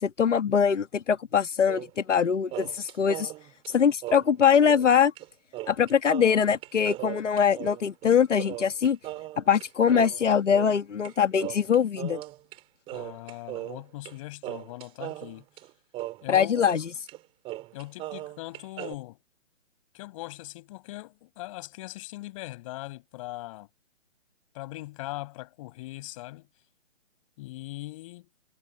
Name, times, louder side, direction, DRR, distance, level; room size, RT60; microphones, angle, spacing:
voice 1, 0.0-3.3 3.7-5.1 5.7-9.0 9.4-12.2 16.3-16.8, left 7 dB, 75° left, 1.7 m, -23 dB
sound 1, 1.7-2.2 2.5-4.9 5.2-5.3 5.5-11.1 11.4-12.6 12.9-14.2 14.4-16.8 17.1-17.2 17.4-19.0, right 16 dB, 15° right, 3.1 m, -38 dB
voice 2, 12.9-15.4 16.2-16.6 17.7-19.2 19.9-23.7 24.5-26.5 27.4-28.3, left 19 dB, 25° left, 7.9 m, -40 dB
hypercardioid pair, 160°, 37 cm